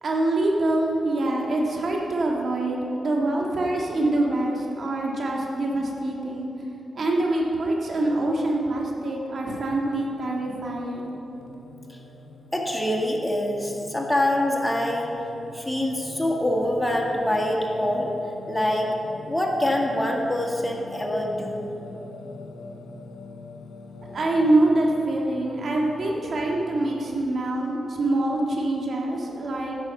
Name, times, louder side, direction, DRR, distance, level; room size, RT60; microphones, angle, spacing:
voice 1, 0.0-6.5 7.0-11.2 24.1-29.7, right 2 dB, 60° right, -1 dB, 1.8 m, -25 dB
Singing, 10.0-27.2, left 3 dB, 85° left, 0.7 m, -44 dB
voice 2, 12.5-15.1 15.5-18.1 18.5-18.9 19.3-21.7, left 1 dB, 10° left, 0 dB, 1.7 m, -25 dB
9.7 x 6.2 x 7.5 m, 3.0 s
supercardioid pair, 50°, 0 cm